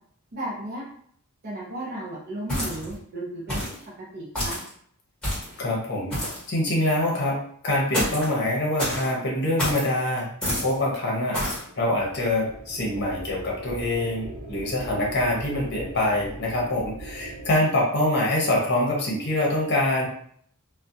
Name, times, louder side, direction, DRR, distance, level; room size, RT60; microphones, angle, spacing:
voice 1, 0.3-0.8 1.4-4.6 17.6-17.7, right 1 dB, 45° right, -4 dB, 0.6 m, -35 dB
sound 1, 2.5-3.0 3.5-3.8 4.3-4.7 5.2-5.6 6.1-6.5 7.9-8.3 8.8-9.1 9.6-9.9 10.4-10.7 11.3-11.6, equal, 5° left, 1.1 m, -28 dB
voice 2, 5.6-6.1 6.5-7.4 7.6-10.3 10.6-11.4 11.8-20.1, left 1 dB, 50° left, -3 dB, 0.7 m, -25 dB
sound 2, 11.4-17.5, right 1 dB, 85° right, 0.8 m, -40 dB
2.3 x 2.1 x 2.6 m, 0.63 s
head